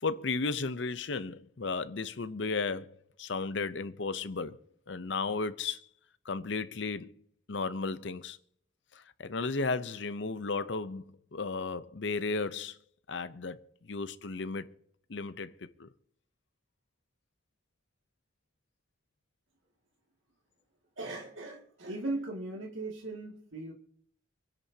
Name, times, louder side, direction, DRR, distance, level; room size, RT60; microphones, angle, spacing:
voice 1, 0.0-4.6 4.9-5.8 6.3-7.1 7.5-8.4 8.9-12.8 13.1-13.6 13.9-14.7 15.1-15.5 15.8-15.9, left 4 dB, 65° left, 0.7 m, -34 dB
voice 2, 21.0-23.7, right 2 dB, 85° right, 2.3 m, -38 dB
25.5 x 10.5 x 2.8 m
head